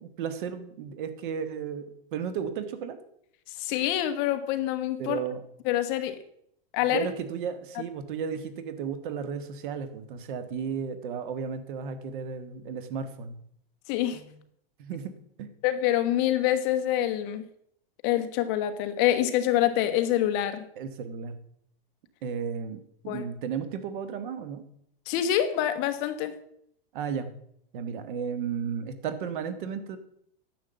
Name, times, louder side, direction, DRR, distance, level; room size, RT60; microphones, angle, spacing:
voice 1, 0.0-3.0 5.0-5.4 6.9-13.3 14.8-15.1 15.4-15.5 20.8-21.4 22.2-24.6 26.9-27.3 27.7-30.0, right 7 dB, 55° right, 1.5 m, -34 dB
voice 2, 3.5-5.2 5.6-6.2 6.7-7.1 13.9-14.4 15.6-17.5 18.0-20.6 23.1-23.2 25.1-26.4, left 12 dB, 35° left, 1.0 m, -26 dB
10.5 x 7.2 x 6.9 m
supercardioid pair, 160°, 30 cm